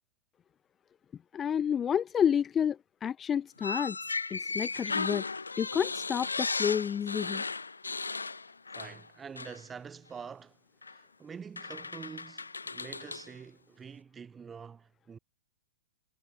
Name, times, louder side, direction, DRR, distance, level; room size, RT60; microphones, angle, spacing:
voice 1, 1.3-4.0 4.3-5.3 5.6-7.4, left 8 dB, 20° left, 0.4 m, -30 dB
sound 1, 3.6-9.1 9.4-9.6 10.8-11.0 11.6-13.3, left 4 dB, 85° left, 0.4 m, -36 dB
voice 2, 8.7-10.6 10.8-15.2, right 6 dB, 15° right, 1.0 m, -46 dB
figure-of-eight pair, 105°, 0 cm